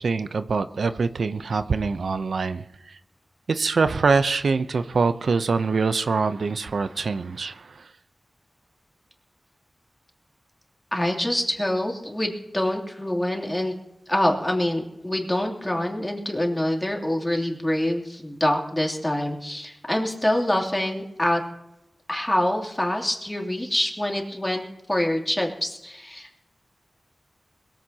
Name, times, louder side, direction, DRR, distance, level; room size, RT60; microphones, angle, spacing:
voice 1, 0.0-2.6 3.5-7.7, right 4 dB, 90° right, 11 dB, 0.6 m, -24 dB
voice 2, 10.9-13.7 14.1-21.4 22.1-24.6 24.9-26.4, left 1 dB, 15° left, 1 dB, 2.9 m, -25 dB
21.5 x 15.0 x 2.8 m, 0.89 s
wide cardioid pair, 70°, 0 cm